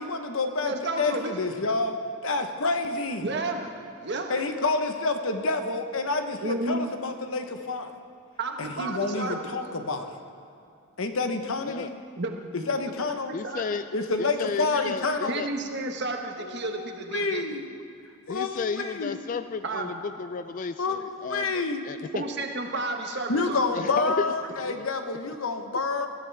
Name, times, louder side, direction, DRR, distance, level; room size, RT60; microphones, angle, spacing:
voice 1, 0.0-3.3 4.3-7.9 8.6-10.2 11.0-11.9 12.5-13.3 13.9-15.3 16.4-17.7 18.3-19.2 20.8-21.8 23.3-26.1, left 3 dB, 65° left, 6 dB, 1.1 m, -28 dB
voice 2, 0.6-1.3 3.2-3.7 4.0-4.3 6.4-6.9 8.4-9.5 12.2-12.3 13.3-13.6 15.3-17.6 19.6-19.9 22.1-23.8, right 2 dB, 50° right, 3 dB, 1.4 m, -31 dB
voice 3, 13.3-13.8 14.2-15.5 18.3-22.0 23.7-24.2 24.6-24.7, left 5 dB, 35° left, 11 dB, 0.3 m, -33 dB
20.5 x 14.0 x 3.5 m, 2.5 s
head